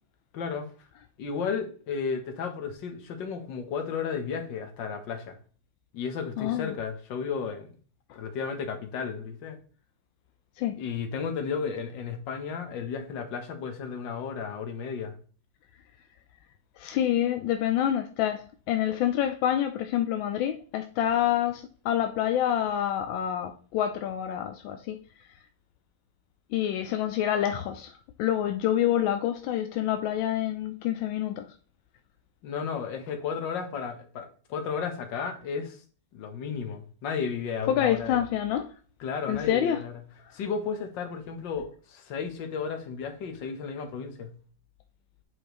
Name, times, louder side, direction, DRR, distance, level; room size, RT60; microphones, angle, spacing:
voice 1, 0.3-0.7 1.2-5.4 5.9-7.7 8.1-9.6 10.8-15.1 32.4-35.8 36.1-38.3 39.0-39.9 40.3-44.3, left 6 dB, 70° left, 1.7 m, -33 dB
voice 2, 6.4-6.7 10.6-10.8 16.8-25.0 26.5-27.9 28.2-31.5 37.7-38.7 39.3-39.8, left 11 dB, 90° left, 1.4 m, -27 dB
8.2 x 5.0 x 3.0 m
omnidirectional pair, 2.1 m